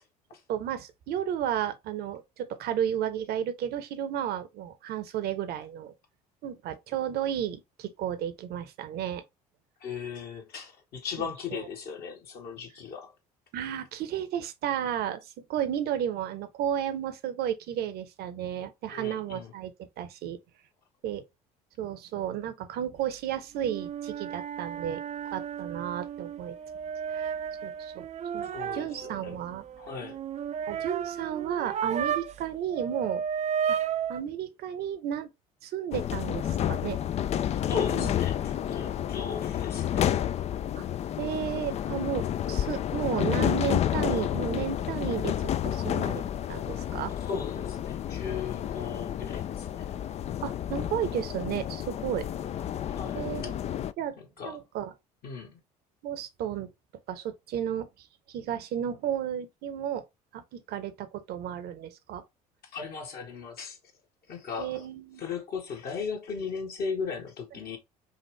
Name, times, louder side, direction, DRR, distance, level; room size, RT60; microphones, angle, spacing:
voice 1, 0.5-5.9 6.4-9.2 11.2-11.3 13.5-20.4 21.0-21.2 21.8-25.0 25.3-26.6 27.1-27.3 27.6-28.1 28.3-29.6 30.7-33.2 33.7-33.8 34.1-35.3 35.6-37.0 37.9-38.1 40.7-40.8 41.2-46.2 46.5-47.1 50.4-52.3 53.1-53.5 54.0-54.2 54.4-54.9 56.0-56.7 57.1-60.0 60.3-62.2 64.6-65.2, right 9 dB, 55° right, 0.8 m, -33 dB
voice 2, 9.8-13.1 18.9-19.5 28.5-29.4 29.8-30.2 37.7-40.1 47.2-49.9 52.8-53.5 54.2-54.6 55.2-55.6 62.7-63.8 64.3-64.8 65.2-67.8, left 5 dB, 50° left, 1.5 m, -37 dB
sound 1, 23.6-32.4 32.7-34.2, right 8 dB, 35° right, 0.5 m, -33 dB
sound 2, 35.9-53.9, left 10 dB, 35° left, 0.4 m, -30 dB
5.6 x 2.5 x 3.3 m
figure-of-eight pair, 60°, 20 cm